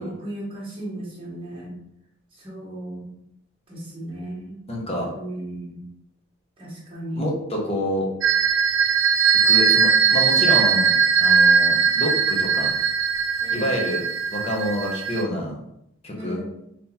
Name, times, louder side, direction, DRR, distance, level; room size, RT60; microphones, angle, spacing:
voice 1, 0.0-1.8 2.3-3.2 3.7-4.6 5.1-5.9 6.6-7.3 13.4-13.8 16.1-16.5, right 1 dB, 25° right, -5 dB, 1.2 m, -35 dB
voice 2, 4.7-5.1 7.2-8.1 9.4-12.7 13.5-14.0 14.3-15.5 16.0-16.4, equal, 30° left, -1 dB, 0.8 m, -27 dB
sound 1, 8.2-15.2, right 6 dB, 65° right, 0.3 m, -19 dB
3.7 x 2.9 x 2.8 m, 0.78 s
head